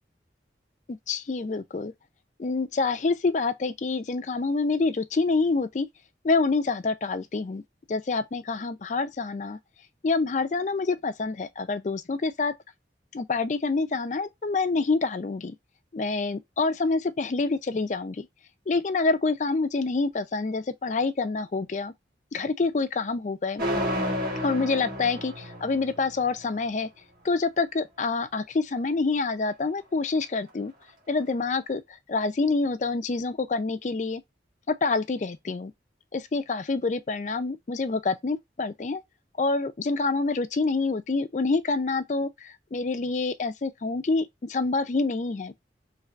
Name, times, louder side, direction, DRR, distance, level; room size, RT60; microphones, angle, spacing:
voice 1, 0.9-1.9 2.4-5.9 6.2-7.6 7.9-9.6 10.0-12.5 13.1-15.5 15.9-18.3 18.7-21.9 22.3-23.6 24.4-26.9 27.2-30.7 31.1-34.2 34.7-35.7 36.1-39.0 39.4-45.5, left 3 dB, 40° left, 0.4 m, -27 dB
sound 1, 23.6-26.5, equal, 50° right, 1.9 m, -31 dB
4.4 x 3.2 x 2.4 m
head